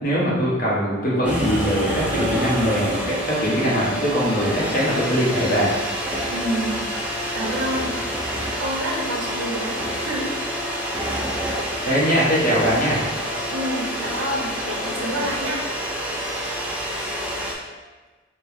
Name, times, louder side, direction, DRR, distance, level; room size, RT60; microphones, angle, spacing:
voice 1, 0.0-5.7 11.8-13.0, equal, 45° left, -7 dB, 1.0 m, -21 dB
sound 1, 0.7-16.7, left 2 dB, 75° left, 0.4 m, -40 dB
sound 2, 1.2-17.5, equal, 5° right, 0.3 m, -28 dB
voice 2, 6.3-7.9 8.3-10.7 13.5-15.6, right 1 dB, 90° right, -2 dB, 0.7 m, -29 dB
4.2 x 2.0 x 3.4 m, 1.3 s
head